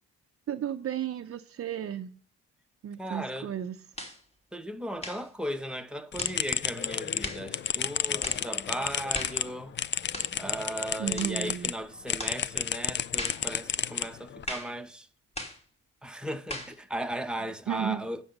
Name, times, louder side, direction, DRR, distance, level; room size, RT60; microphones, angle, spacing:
voice 1, 0.5-2.1 2.8-3.8 8.7-8.8 11.0-11.7 17.4-18.0, right 9 dB, 50° right, 0.7 m, -34 dB
voice 2, 3.0-3.5 4.5-9.7 10.4-15.1 16.0-18.2, right 1 dB, 5° right, 0.9 m, -36 dB
sound 1, 4.0-4.2 5.0-5.3 6.2-6.4 7.2-7.5 8.2-8.5 9.1-9.4 10.1-10.4 11.2-11.4 12.2-12.4 13.2-13.5 14.5-14.8 15.4-15.6 16.5-16.8, left 1 dB, 20° left, 2.9 m, -38 dB
sound 2, 6.1-11.7 12.1-14.4, left 9 dB, 40° left, 0.4 m, -32 dB
9.7 x 7.0 x 5.2 m
cardioid pair, 90°, 30 cm